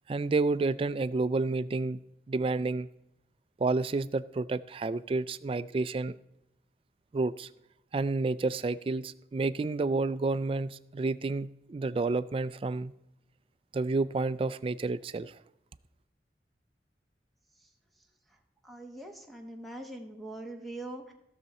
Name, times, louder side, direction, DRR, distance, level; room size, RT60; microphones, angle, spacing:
voice 1, 0.1-2.0 2.3-2.9 3.6-6.2 7.1-7.5 7.9-12.9 13.7-15.4, right 3 dB, 30° right, 15 dB, 0.3 m, -30 dB
voice 2, 18.6-21.1, right 1 dB, ahead, 3 dB, 1.1 m, -42 dB
16.0 x 6.6 x 4.1 m, 0.83 s
head